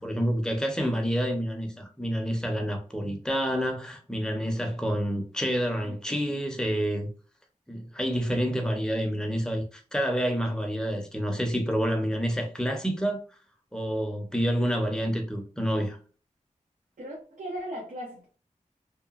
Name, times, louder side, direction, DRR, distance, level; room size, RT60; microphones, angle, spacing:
voice 1, 0.0-7.1 7.7-13.2 13.7-16.0, equal, 5° left, 0.6 m, -28 dB
voice 2, 17.0-18.3, equal, 75° right, 0.7 m, -37 dB
2.8 x 2.2 x 2.4 m
wide cardioid pair, 90°, 13 cm